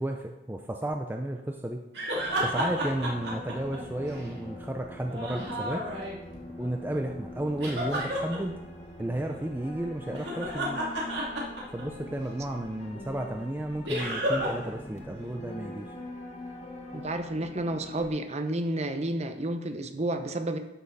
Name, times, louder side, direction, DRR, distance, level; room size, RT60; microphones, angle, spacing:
voice 1, 0.0-1.8 2.4-5.8 6.6-8.5 9.0-10.9 11.7-15.9, right 1 dB, 10° right, 3 dB, 0.5 m, -33 dB
sound 1, 1.9-4.3 5.0-6.4 7.6-8.4 10.1-12.1 13.8-14.7 15.0-15.1 18.0-18.1, equal, 65° right, 2.6 m, -31 dB
sound 2, 2.1-18.1, left 1 dB, 40° left, 1.5 m, -43 dB
voice 2, 16.9-20.6, right 1 dB, 35° right, 7 dB, 0.9 m, -31 dB
12.5 x 6.4 x 4.1 m, 0.98 s
head